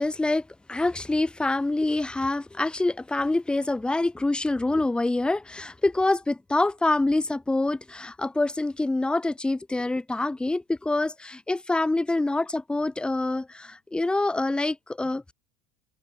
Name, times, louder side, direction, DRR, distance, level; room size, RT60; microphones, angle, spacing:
voice 1, 0.0-15.3, left 2 dB, 5° left, 1.2 m, -26 dB
open air
cardioid pair, 160°, 18 cm